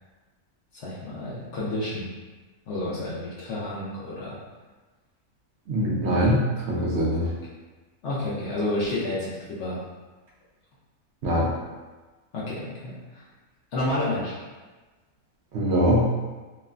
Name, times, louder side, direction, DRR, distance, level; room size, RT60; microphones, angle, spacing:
voice 1, 0.7-2.1 2.7-4.4 7.2-7.3 8.0-9.8 12.3-13.2 13.7-14.3, left 1 dB, 60° left, -7 dB, 0.8 m, -30 dB
voice 2, 5.7-6.4 6.7-7.2 11.2-11.5 15.5-16.0, equal, 60° right, -5 dB, 0.7 m, -22 dB
3.1 x 2.2 x 2.4 m, 1.3 s
omnidirectional pair, 1.5 m